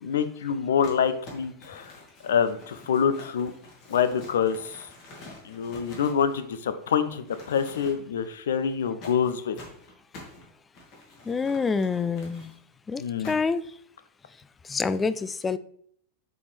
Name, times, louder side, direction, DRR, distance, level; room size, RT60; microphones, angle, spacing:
voice 1, 0.0-2.0 2.2-3.5 3.9-4.9 5.4-9.6 13.0-13.4, left 7 dB, 60° left, 11 dB, 0.6 m, -26 dB
Crumpling crinkling, 0.8-6.9 7.2-8.2 9.0-12.5 13.2-13.7, left 2 dB, 45° left, 2.2 m, -48 dB
voice 2, 11.3-12.5 12.9-13.6 14.7-15.6, left 5 dB, 15° left, 14 dB, 0.3 m, -27 dB
8.3 x 4.3 x 3.3 m, 0.63 s
figure-of-eight pair, 90°, 0 cm